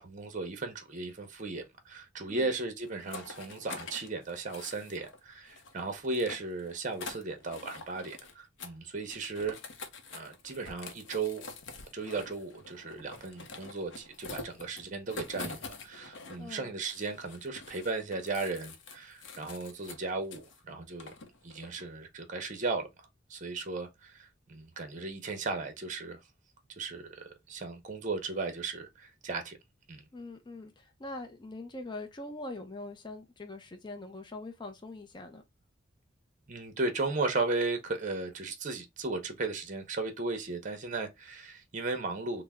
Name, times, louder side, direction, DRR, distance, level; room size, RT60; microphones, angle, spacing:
voice 1, 0.0-9.6 10.1-11.4 11.9-21.2 21.4-26.2 26.8-29.6 29.9-30.0 36.5-42.4, right 3 dB, 40° right, 0.7 m, -36 dB
sound 1, 2.8-5.2 5.5-8.3 8.6-8.8 9.0-16.5 16.8-20.6 21.0-21.9, left 3 dB, 70° left, 0.6 m, -46 dB
voice 2, 16.4-16.8 30.1-35.4, left 2 dB, 25° left, 0.5 m, -43 dB
3.3 x 2.0 x 3.4 m
head